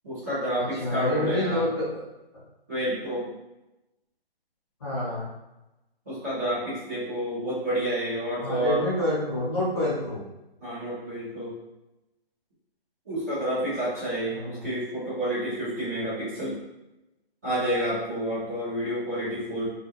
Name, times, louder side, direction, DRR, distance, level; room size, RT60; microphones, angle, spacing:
voice 1, 0.0-1.6 2.7-3.2 6.1-8.8 10.6-11.5 13.1-16.6 17.4-19.7, right 1 dB, 15° right, -13 dB, 0.6 m, -29 dB
voice 2, 0.8-1.7 4.8-5.3 8.4-10.2 14.3-14.7, left 1 dB, 30° left, -7 dB, 0.8 m, -27 dB
2.4 x 2.2 x 2.8 m, 0.95 s
figure-of-eight pair, 155°, 31 cm